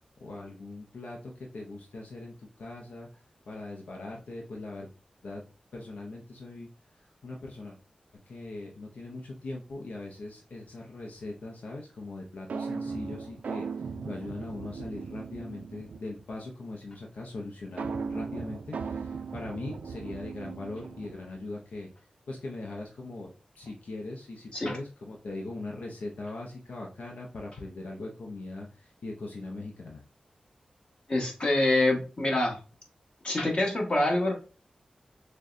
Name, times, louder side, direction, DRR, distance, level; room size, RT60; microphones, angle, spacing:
voice 1, 0.2-3.1 3.5-4.9 5.2-5.4 5.7-6.7 7.2-7.8 8.3-21.9 22.3-23.3 23.5-30.0, left 2 dB, 80° left, -1 dB, 0.6 m, -40 dB
sound 1, 12.5-16.2 17.8-21.4, right 5 dB, 80° right, 0.3 m, -37 dB
voice 2, 31.1-32.6 33.2-34.3, left 2 dB, 40° left, 0 dB, 1.4 m, -26 dB
6.2 x 2.2 x 2.5 m, 0.35 s
wide cardioid pair, 70°, 2 cm